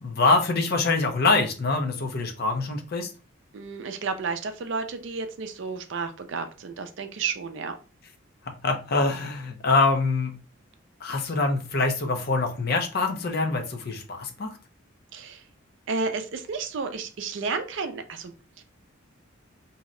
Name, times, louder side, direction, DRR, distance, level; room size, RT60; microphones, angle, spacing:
voice 1, 0.0-3.1 8.5-10.3 11.0-14.6, left 3 dB, 50° left, 5 dB, 0.5 m, -24 dB
voice 2, 3.5-7.8 15.1-15.4 15.9-18.6, right 4 dB, 60° right, 7 dB, 0.4 m, -32 dB
2.7 x 2.1 x 3.6 m, 0.35 s
head